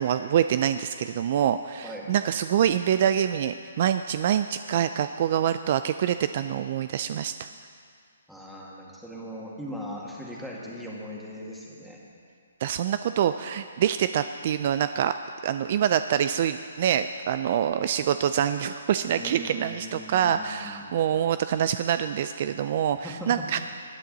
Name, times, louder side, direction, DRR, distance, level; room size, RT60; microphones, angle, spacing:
voice 1, 0.0-7.5 12.6-15.1 15.4-23.6, right 9 dB, 45° right, 11 dB, 0.4 m, -25 dB
voice 2, 8.3-12.0 19.0-21.0 23.0-23.6, equal, ahead, -5 dB, 2.0 m, -39 dB
19.5 x 10.0 x 4.0 m, 2.3 s
hypercardioid pair, 145°, 0 cm